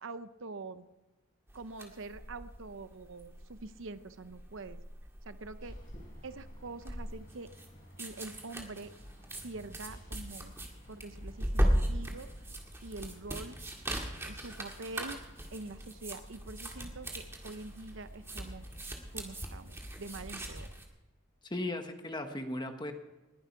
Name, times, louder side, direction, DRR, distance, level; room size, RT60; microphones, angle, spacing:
voice 1, 0.0-0.9 1.5-4.8 5.3-5.7 6.2-7.5 8.0-8.9 9.4-10.5 10.9-12.3 12.8-13.6 14.2-15.2 15.5-18.7 19.1-20.7, right 3 dB, 70° right, 12 dB, 0.8 m, -45 dB
sound 1, 1.5-20.9, equal, 10° right, 2.0 m, -38 dB
sound 2, 5.6-20.6, equal, 40° left, 5.2 m, -54 dB
voice 2, 21.4-22.9, left 1 dB, 20° left, 6 dB, 1.3 m, -37 dB
20.5 x 11.5 x 4.7 m, 1.1 s
head